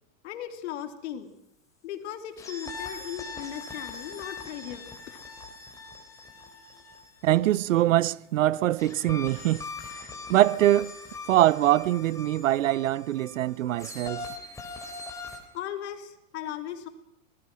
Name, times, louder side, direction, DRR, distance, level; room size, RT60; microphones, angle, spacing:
voice 1, 0.2-1.3 1.8-5.2 6.4-6.9 10.2-10.3 15.5-16.9, left 10 dB, 55° left, 3.4 m, -38 dB
sound 1, 2.4-8.0 8.8-15.4, left 3 dB, 10° left, 3.9 m, -42 dB
voice 2, 7.2-9.6 10.3-10.9 11.3-14.3, right 14 dB, 70° right, 0.7 m, -23 dB
27.5 x 19.0 x 6.3 m
supercardioid pair, 155°, 40 cm